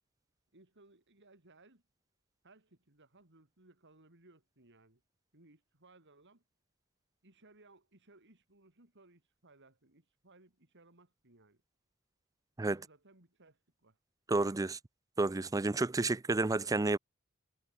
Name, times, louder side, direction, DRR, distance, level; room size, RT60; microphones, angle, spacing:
voice 1, 0.5-1.8 2.4-5.0 5.3-6.4 7.2-11.6 12.7-14.0, right 2 dB, 55° right, 3.9 m, -63 dB
voice 2, 14.3-14.8 15.2-17.0, right 3 dB, 15° right, 0.4 m, -30 dB
head